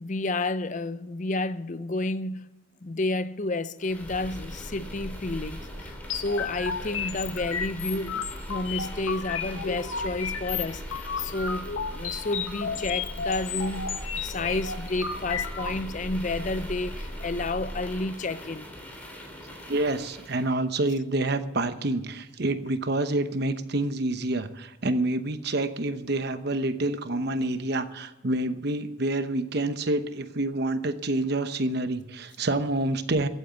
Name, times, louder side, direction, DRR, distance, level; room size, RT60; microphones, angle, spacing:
voice 1, 0.0-2.5 2.8-18.7, left 2 dB, 40° left, 0.6 m, -31 dB
sound 1, 3.8-20.5, equal, 10° left, 3.1 m, -39 dB
sound 2, 6.1-15.7, left 6 dB, 85° left, 1.4 m, -33 dB
voice 2, 19.7-33.3, right 2 dB, 55° right, 1.0 m, -27 dB
15.5 x 9.1 x 7.0 m
head